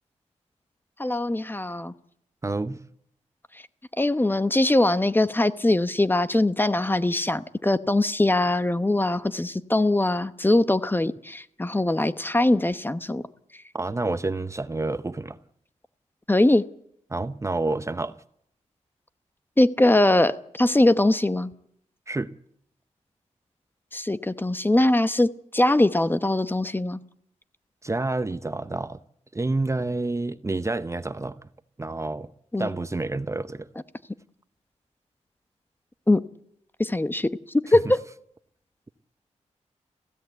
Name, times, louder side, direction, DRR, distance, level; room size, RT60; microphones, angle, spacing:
voice 1, 1.0-1.9 4.0-13.2 16.3-16.6 19.6-21.5 23.9-27.0 32.5-32.7 36.1-36.2 36.8-37.3 37.7-38.0, left 1 dB, 15° left, 0.9 m, -22 dB
voice 2, 2.4-2.8 13.7-15.4 17.1-18.2 22.1-22.3 27.8-29.0 29.3-31.4 31.8-32.3 32.6-33.7, right 2 dB, 25° right, 0.8 m, -28 dB
22.0 x 16.0 x 8.0 m
cardioid pair, 70°, 12 cm